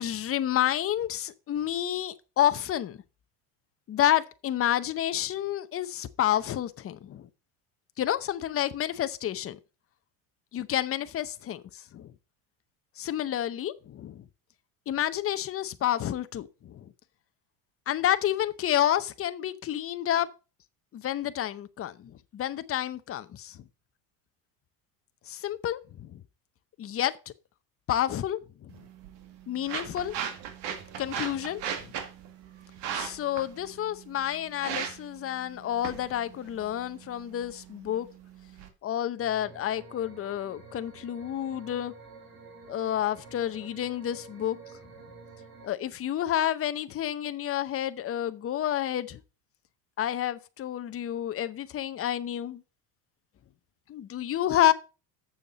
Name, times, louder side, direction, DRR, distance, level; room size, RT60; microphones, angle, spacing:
voice 1, 0.0-3.0 3.9-7.3 8.0-9.6 10.5-12.1 13.0-14.2 14.9-16.8 17.9-20.3 20.9-23.6 25.3-26.2 26.8-27.1 27.9-28.7 29.5-30.1 31.0-31.9 32.9-38.1 38.8-41.9 42.7-44.6 45.6-49.2 50.0-52.6 53.9-54.7, left 11 dB, 30° left, 0.7 m, -29 dB
sound 1, 28.7-38.7, right 8 dB, 65° right, 2.0 m, -39 dB
sound 2, 39.2-45.7, right 4 dB, 45° right, 3.7 m, -49 dB
7.3 x 6.9 x 5.1 m
supercardioid pair, 120°, 45 cm